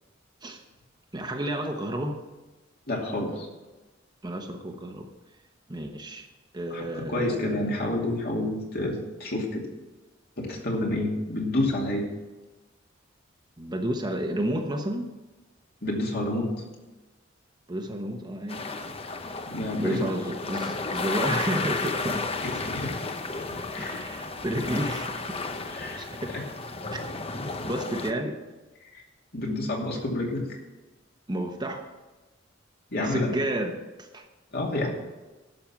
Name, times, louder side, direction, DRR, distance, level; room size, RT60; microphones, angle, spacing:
voice 1, 1.1-2.2 4.2-5.1 5.7-6.3 6.5-7.6 13.6-15.1 17.7-18.6 19.8-22.3 23.8-25.5 26.0-26.4 26.9-27.0 27.6-28.4 31.3-31.9 33.0-34.2, right 1 dB, 20° right, 3 dB, 1.0 m, -31 dB
voice 2, 2.9-3.5 6.7-9.7 10.4-12.1 15.8-16.5 19.5-20.1 22.4-22.9 23.7-24.0 25.7-26.4 26.9-27.1 27.6-27.7 28.9-29.0 29.3-30.4 32.9-33.3 34.5-34.9, left 1 dB, 50° left, -1 dB, 2.6 m, -29 dB
sound 1, 18.5-28.1, left 3 dB, 30° left, 0.8 m, -33 dB
12.0 x 6.5 x 7.3 m, 1.2 s
head